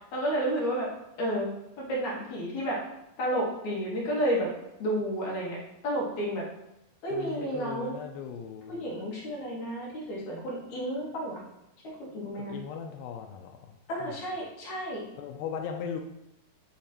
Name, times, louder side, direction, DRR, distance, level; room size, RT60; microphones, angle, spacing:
voice 1, 0.1-0.9 1.2-1.5 1.8-2.8 3.2-4.5 4.8-5.6 5.8-6.4 7.0-8.0 8.7-11.4 12.0-12.5 13.9-15.0, right 1 dB, 60° left, -4 dB, 2.5 m, -31 dB
voice 2, 7.1-8.8 12.4-14.2 15.2-16.0, left 7 dB, 80° left, 3 dB, 2.2 m, -38 dB
8.7 x 3.2 x 4.2 m, 0.85 s
omnidirectional pair, 4.5 m